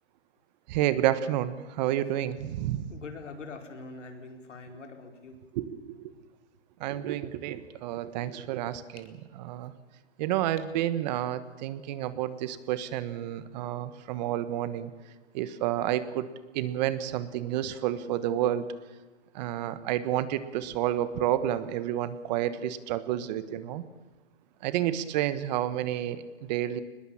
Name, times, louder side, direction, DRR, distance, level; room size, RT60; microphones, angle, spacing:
voice 1, 0.7-2.9 5.5-6.1 6.8-9.1 9.4-9.7 10.2-14.9 15.3-16.3 16.5-18.7 19.3-23.8 24.6-26.8, right 12 dB, 35° right, 14 dB, 1.3 m, -30 dB
voice 2, 2.9-5.4, left 3 dB, 85° left, 4 dB, 4.3 m, -43 dB
22.0 x 20.5 x 7.3 m, 1.2 s
hypercardioid pair, 140°, 35 cm